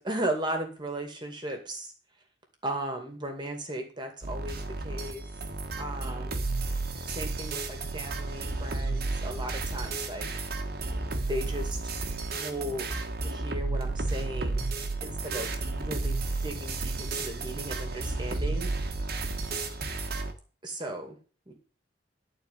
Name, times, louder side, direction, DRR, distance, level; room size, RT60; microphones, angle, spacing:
voice 1, 0.0-1.9 2.6-5.2 5.8-6.4 7.1-10.3 11.3-11.8 12.3-12.9 13.2-14.6 15.0-15.5 15.8-18.7 20.6-21.2 21.5-21.6, right 1 dB, 25° right, 4 dB, 2.3 m, -36 dB
sound 1, 4.2-20.3, right 3 dB, 55° right, 1.5 m, -32 dB
11.5 x 4.5 x 8.3 m, 0.38 s
head